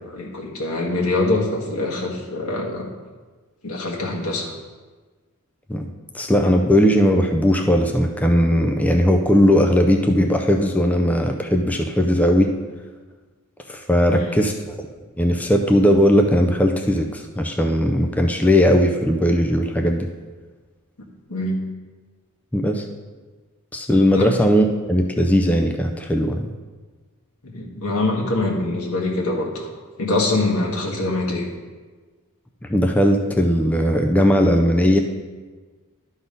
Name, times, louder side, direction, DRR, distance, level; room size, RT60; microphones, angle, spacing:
voice 1, 0.0-2.9 3.6-4.5 14.1-14.3 21.3-21.6 24.1-24.3 27.4-29.7 30.0-31.5, left 2 dB, 85° left, -2 dB, 1.7 m, -24 dB
voice 2, 5.7-12.5 13.7-14.8 15.2-20.1 22.5-22.8 23.7-26.5 32.7-35.0, equal, 5° left, 3 dB, 0.4 m, -18 dB
12.0 x 4.1 x 5.3 m, 1.4 s
head